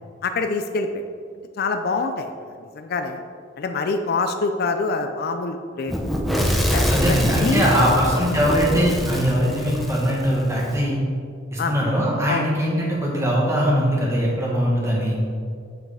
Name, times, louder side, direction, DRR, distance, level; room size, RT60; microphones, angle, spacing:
voice 1, 0.2-1.0 1.6-3.2 3.6-5.9 6.7-8.0 11.6-11.7 12.3-12.4, left 3 dB, 55° left, 7 dB, 0.4 m, -25 dB
Fire / Explosion, 5.9-10.7, equal, ahead, 0.6 m, -24 dB
voice 2, 6.9-11.0 11.5-15.2, equal, 15° right, -4 dB, 1.5 m, -21 dB
7.6 x 6.0 x 3.4 m, 2.2 s
head